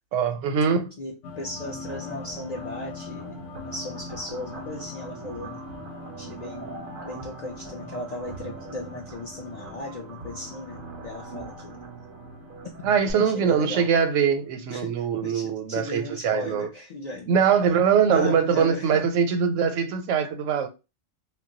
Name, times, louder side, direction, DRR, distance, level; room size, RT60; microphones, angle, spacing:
voice 1, 0.1-0.9 12.8-16.7 17.3-20.7, right 7 dB, 90° right, 0.9 m, -22 dB
voice 2, 1.0-5.6 6.2-6.8 7.0-11.8 12.8-13.9 14.7-17.4 17.7-17.8 18.1-19.0, left 2 dB, 55° left, 0.5 m, -36 dB
sound 1, 1.2-15.2, left 4 dB, 80° left, 0.9 m, -43 dB
sound 2, 1.8-13.1, right 4 dB, 55° right, 0.6 m, -43 dB
2.2 x 2.1 x 3.7 m
omnidirectional pair, 1.3 m